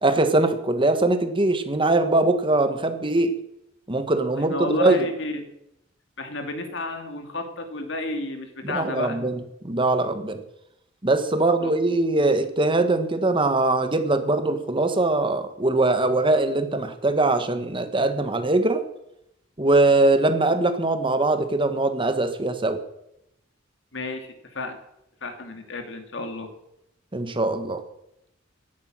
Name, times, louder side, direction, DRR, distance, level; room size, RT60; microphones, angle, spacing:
voice 1, 0.0-3.3 3.9-5.0 8.6-10.4 11.0-18.8 19.6-22.8 27.1-27.8, right 2 dB, 25° right, 8 dB, 1.5 m, -22 dB
voice 2, 4.3-5.5 6.2-9.2 11.6-11.7 23.9-24.8 25.2-26.5, left 2 dB, 65° left, 6 dB, 2.5 m, -31 dB
17.0 x 11.5 x 6.3 m, 0.82 s
head